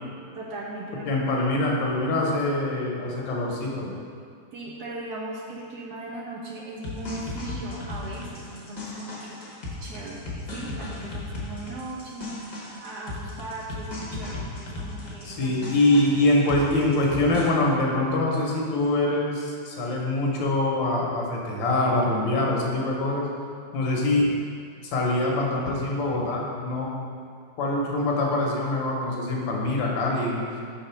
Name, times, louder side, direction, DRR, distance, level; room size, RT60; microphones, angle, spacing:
voice 1, 0.3-1.1 4.5-15.6, right 2 dB, 70° right, -3 dB, 1.0 m, -38 dB
voice 2, 1.1-3.9 15.2-23.3 23.7-24.3 24.9-26.9 27.6-30.4, left 2 dB, 75° left, -2 dB, 1.6 m, -24 dB
sound 1, 6.8-17.5, left 2 dB, 30° left, 0.8 m, -36 dB
5.0 x 3.8 x 5.5 m, 2.3 s
omnidirectional pair, 2.1 m